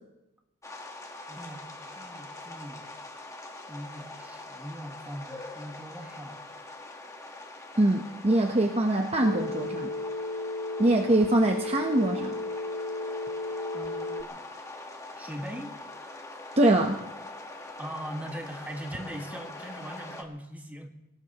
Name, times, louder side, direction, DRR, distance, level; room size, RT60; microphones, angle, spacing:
sound 1, 0.6-20.2, left 2 dB, 15° left, 1.4 m, -43 dB
voice 1, 1.3-2.9 3.7-6.4 13.7-14.4 15.1-15.7 17.8-20.9, equal, 10° right, 2 dB, 1.6 m, -41 dB
voice 2, 7.8-9.9 10.8-12.3 16.6-17.0, right 1 dB, 30° right, 3 dB, 0.9 m, -23 dB
Telephone, 9.2-14.2, left 2 dB, 40° left, 0.9 m, -34 dB
24.5 x 18.0 x 3.0 m, 0.91 s
head